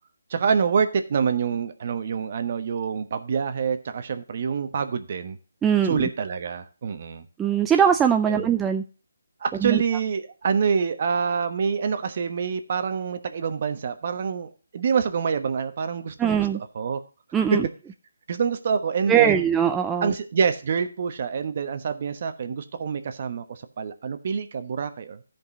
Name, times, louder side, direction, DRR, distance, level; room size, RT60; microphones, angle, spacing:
voice 1, 0.3-5.4 5.8-7.2 8.3-8.5 9.4-16.5 16.7-17.0 17.5-17.6 18.3-19.4 20.0-25.2, right 6 dB, 45° right, 9 dB, 1.2 m, -26 dB
voice 2, 5.6-6.1 7.4-8.8 9.6-9.8 16.2-16.6 17.3-17.7 19.1-20.1, right 8 dB, 10° right, 5 dB, 0.4 m, -21 dB
13.5 x 5.3 x 4.0 m, 0.35 s
hypercardioid pair, 160°, 0 cm